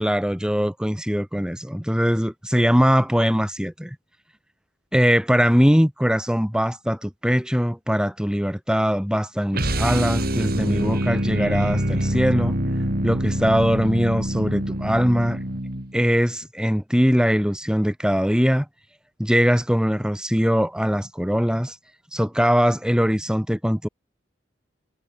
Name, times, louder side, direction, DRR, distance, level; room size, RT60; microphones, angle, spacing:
voice 1, 0.0-4.0 4.9-12.6 13.0-15.4 15.9-18.7 19.2-21.8 22.1-23.9, equal, 5° right, 4.2 m, -21 dB
sound 1, 9.5-16.0, right 1 dB, 55° right, 6.1 m, -25 dB
head